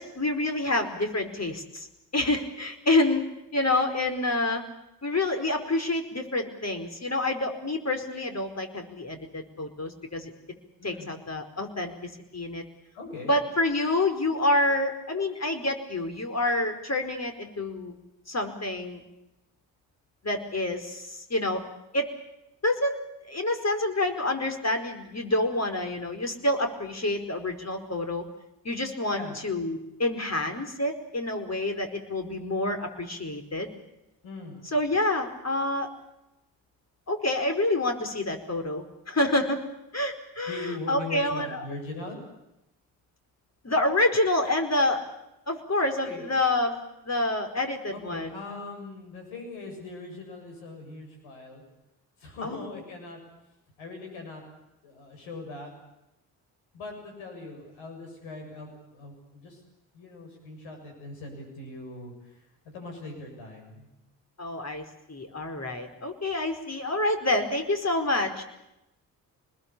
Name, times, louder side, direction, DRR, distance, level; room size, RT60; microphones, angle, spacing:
voice 1, 0.0-1.9 2.1-3.2 3.5-4.6 5.0-10.3 10.8-11.9 12.3-12.6 13.3-17.9 18.3-19.0 20.2-21.6 21.9-22.1 22.6-28.2 28.6-33.7 34.7-35.9 37.1-39.6 39.9-41.6 43.6-45.0 45.5-46.8 47.0-48.4 52.4-52.7 64.4-68.4, left 2 dB, 30° left, 6 dB, 4.8 m, -28 dB
voice 2, 10.8-11.1 12.9-13.3 29.1-29.4 34.2-34.6 40.5-42.2 46.0-46.3 47.9-51.6 52.2-53.2 53.8-54.4 54.8-55.7 56.7-59.6 59.9-63.9, left 3 dB, 75° left, 3 dB, 7.5 m, -40 dB
26.0 x 20.5 x 8.7 m, 0.90 s
hypercardioid pair, 40°, 48 cm